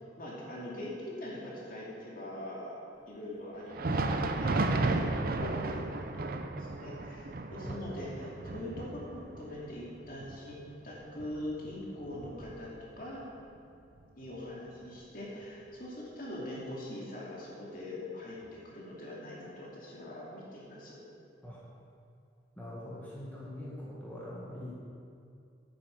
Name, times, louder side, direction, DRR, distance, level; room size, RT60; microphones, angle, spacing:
voice 1, 0.2-2.8 3.1-5.0 5.3-12.7 13.0-13.2 14.1-18.4 18.6-21.0, left 1 dB, 50° left, -5 dB, 2.6 m, -42 dB
Thunder, 3.6-13.1 13.4-13.6 14.3-14.4 15.4-15.5, right 2 dB, 55° right, 0.6 m, -34 dB
voice 2, 7.6-8.0 21.4-21.6 22.6-24.7, left 1 dB, 10° left, -7 dB, 1.7 m, -43 dB
10.5 x 9.0 x 5.2 m, 2.5 s
head